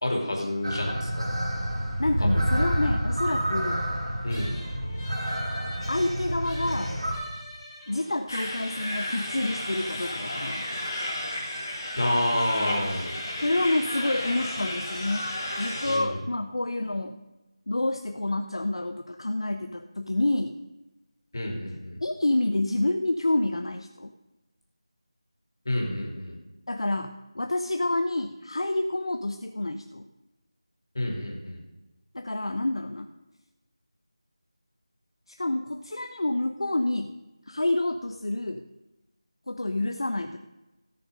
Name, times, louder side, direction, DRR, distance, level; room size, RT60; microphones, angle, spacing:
voice 1, 0.0-1.3 2.2-2.3 4.2-4.5 12.0-13.1 15.8-16.2 21.3-22.0 25.6-26.4 30.9-31.6, left 1 dB, 40° left, 0 dB, 2.8 m, -29 dB
sound 1, 0.6-7.1, equal, 65° right, 4.0 m, -28 dB
voice 2, 2.0-3.8 5.9-7.0 7.9-10.6 13.4-15.3 15.6-17.2 17.7-20.5 22.0-24.1 26.7-30.1 32.1-33.1 35.3-37.1 37.5-38.6 39.5-40.4, left 2 dB, 65° left, 6 dB, 0.7 m, -28 dB
sound 2, 4.3-11.1, equal, 5° left, 2.0 m, -46 dB
sound 3, 8.3-16.0, left 1 dB, 25° left, 2.7 m, -33 dB
16.5 x 6.7 x 5.3 m, 1.1 s
figure-of-eight pair, 180°, 3 cm